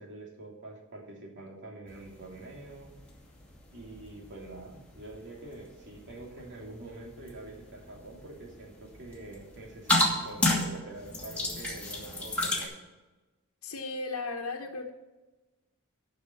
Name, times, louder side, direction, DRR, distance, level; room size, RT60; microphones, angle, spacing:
voice 1, 0.0-2.9 3.7-12.7, right 2 dB, 55° right, 0 dB, 2.9 m, -45 dB
sound 1, 1.9-12.7, left 1 dB, 5° left, 2.5 m, -34 dB
voice 2, 13.6-14.9, left 3 dB, 80° left, -2 dB, 1.2 m, -35 dB
12.0 x 6.0 x 7.1 m, 1.1 s
head